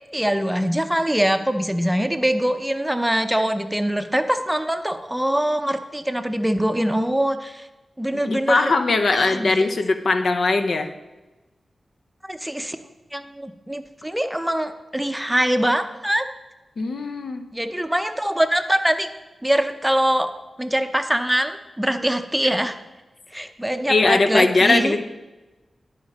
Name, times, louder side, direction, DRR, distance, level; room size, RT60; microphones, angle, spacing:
voice 1, 0.1-7.7 8.0-8.7 9.1-9.6 12.2-12.8 13.1-16.2 17.5-19.1 19.4-20.3 20.6-22.8 23.3-24.9, right 1 dB, 10° right, 8 dB, 0.7 m, -23 dB
voice 2, 8.1-10.9 16.8-17.5 23.9-25.0, left 3 dB, 70° left, 8 dB, 0.6 m, -20 dB
11.0 x 5.0 x 4.2 m, 1.1 s
cardioid pair, 50°, 0 cm